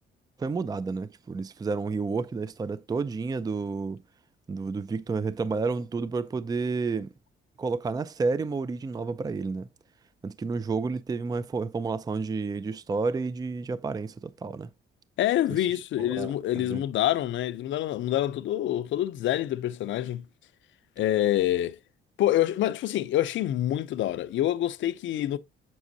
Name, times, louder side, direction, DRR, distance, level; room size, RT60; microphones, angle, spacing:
voice 1, 0.4-4.0 4.5-7.1 7.6-9.7 10.2-14.7 16.1-16.8, right 4 dB, 20° right, 0.4 m, -30 dB
voice 2, 15.2-20.2 21.0-21.8 22.2-25.4, left 13 dB, 70° left, 0.5 m, -26 dB
7.1 x 6.2 x 2.7 m
cardioid pair, 90°, 20 cm